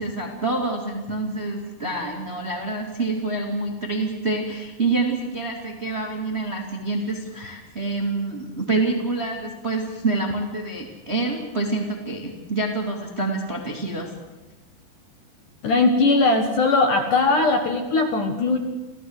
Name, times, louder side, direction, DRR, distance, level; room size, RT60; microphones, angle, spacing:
voice 1, 0.0-14.1, right 3 dB, 20° right, 1 dB, 1.8 m, -27 dB
voice 2, 15.6-18.6, left 3 dB, 60° left, 5 dB, 2.6 m, -19 dB
26.5 x 16.0 x 8.0 m, 1.1 s
omnidirectional pair, 5.0 m